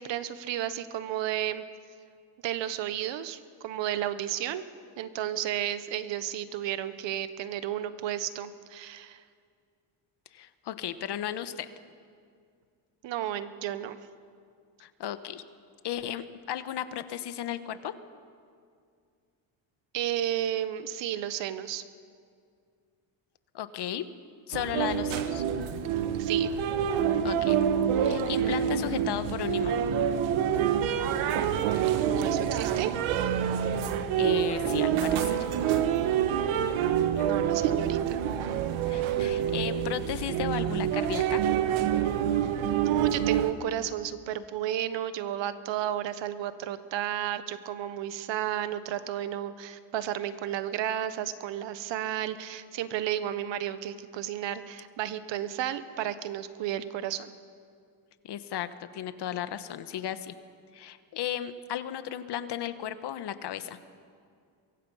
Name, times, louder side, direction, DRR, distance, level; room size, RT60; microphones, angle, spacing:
voice 1, 0.0-1.6 2.4-4.6 5.0-9.2 13.0-14.0 19.9-21.8 25.9-26.5 32.0-33.0 37.2-38.2 42.8-57.3, right 11 dB, 70° right, 13 dB, 1.3 m, -32 dB
voice 2, 10.3-11.7 14.8-15.4 15.8-17.9 23.5-24.0 24.5-25.4 27.2-27.6 28.0-29.8 33.8-33.9 34.2-35.8 37.2-37.3 38.9-41.4 58.2-60.3 60.7-63.8, left 10 dB, 60° left, 11 dB, 1.4 m, -35 dB
sound 1, 24.5-43.5, right 9 dB, 90° right, 1.3 m, -27 dB
24.0 x 23.0 x 5.7 m, 2.2 s
cardioid pair, 105°, 46 cm